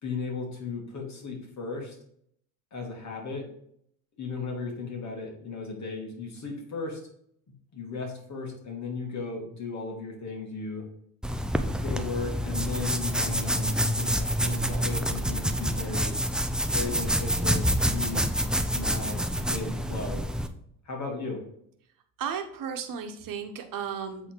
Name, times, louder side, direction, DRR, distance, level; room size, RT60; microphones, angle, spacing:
voice 1, 0.0-2.0 2.7-3.4 4.2-7.0 7.7-10.8 11.8-18.2 18.7-20.2 20.8-21.4, left 4 dB, 40° left, 0 dB, 2.5 m, -36 dB
sound 1, 11.2-20.5, equal, ahead, 0.6 m, -27 dB
voice 2, 22.2-24.3, right 7 dB, 50° right, 6 dB, 1.3 m, -34 dB
8.1 x 3.8 x 4.7 m, 0.69 s
hypercardioid pair, 65°, 41 cm